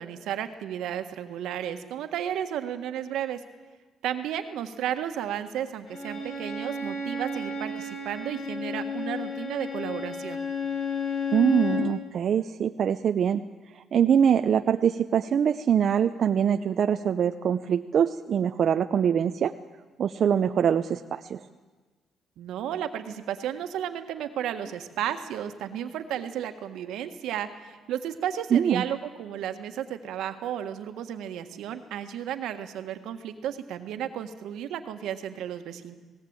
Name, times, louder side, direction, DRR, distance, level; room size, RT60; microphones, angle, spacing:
voice 1, 0.0-3.4 4.0-10.4 22.4-35.9, right 10 dB, 85° right, 8 dB, 1.6 m, -33 dB
Bowed string instrument, 5.9-11.9, left 4 dB, 75° left, 4.9 m, -32 dB
voice 2, 11.3-13.4 13.8-19.5 20.0-21.4 28.5-28.8, right 8 dB, 60° right, 8 dB, 0.6 m, -23 dB
19.0 x 18.0 x 8.9 m, 1.3 s
cardioid pair, 90°, 0 cm